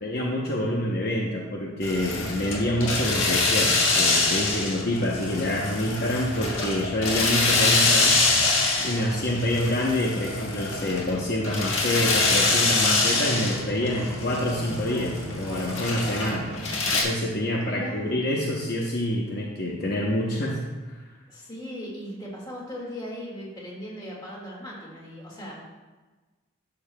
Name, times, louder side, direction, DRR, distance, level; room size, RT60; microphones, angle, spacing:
voice 1, 0.0-8.2 8.4-16.5 16.9-20.6, left 1 dB, 50° left, -2 dB, 0.8 m, -27 dB
sound 1, 1.8-17.0, left 3 dB, 70° left, 1.6 m, -25 dB
voice 2, 7.1-7.4 13.8-14.3 17.7-18.3 21.3-25.5, equal, 20° left, -4 dB, 1.9 m, -38 dB
12.0 x 6.8 x 2.3 m, 1.3 s
head